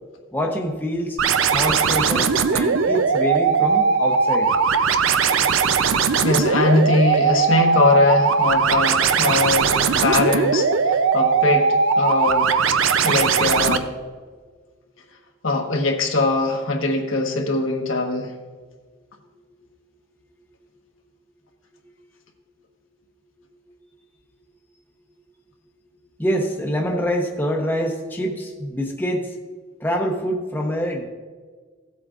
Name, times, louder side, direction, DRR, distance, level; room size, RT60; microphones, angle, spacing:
voice 1, 0.3-1.2 1.5-4.5 26.2-29.3 29.8-31.0, equal, 10° left, 0 dB, 0.8 m, -25 dB
sound 1, 1.2-13.8, right 5 dB, 70° right, 0.5 m, -19 dB
voice 2, 6.2-9.7 10.0-12.5 13.0-13.9 15.4-18.3, left 3 dB, 75° left, 1 dB, 1.4 m, -21 dB
16.5 x 8.2 x 2.5 m, 1.5 s
head